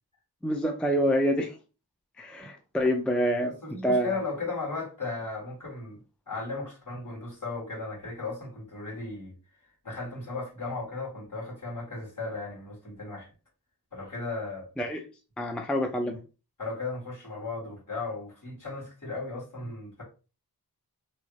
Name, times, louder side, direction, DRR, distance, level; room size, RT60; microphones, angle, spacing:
voice 1, 0.4-1.6 2.2-3.5 3.8-4.2 14.8-15.0 15.4-16.2, equal, 5° left, 0.4 m, -26 dB
voice 2, 3.6-6.0 6.3-9.3 9.8-13.3 13.9-14.7 16.6-20.0, left 3 dB, 50° left, 1.9 m, -36 dB
3.1 x 2.5 x 3.1 m
wide cardioid pair, 40°, 39 cm